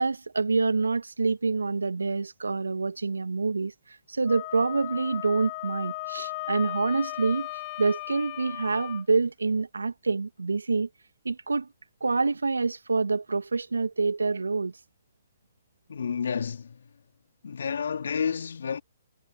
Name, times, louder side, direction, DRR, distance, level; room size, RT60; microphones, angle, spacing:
voice 1, 0.0-7.5 7.8-10.9 11.2-11.7 12.0-14.7, right 4 dB, 85° right, 1.6 m, -27 dB
Wind instrument woodwind instrument, 4.2-9.0, left 22 dB, 40° left, 0.7 m, -36 dB
voice 2, 15.9-16.9 17.4-18.8, left 6 dB, 70° left, 2.8 m, -30 dB
figure-of-eight pair, 125°, 0 cm